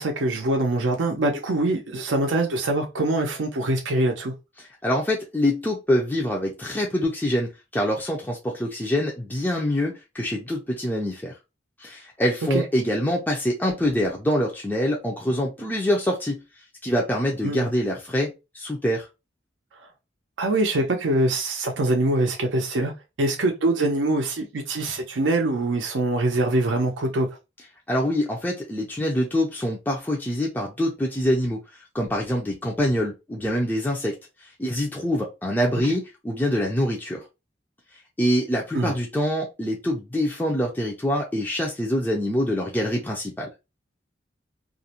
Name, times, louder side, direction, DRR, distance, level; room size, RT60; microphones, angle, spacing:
voice 1, 0.0-4.3 12.5-12.6 17.4-17.7 20.4-22.9 23.2-27.3 38.7-38.9, right 2 dB, 80° right, 0.5 m, -24 dB
voice 2, 4.8-11.3 11.8-16.4 16.8-19.1 27.9-31.6 31.9-34.1 34.6-37.2 38.2-43.5, equal, 10° left, 0.3 m, -25 dB
2.4 x 2.0 x 2.8 m
head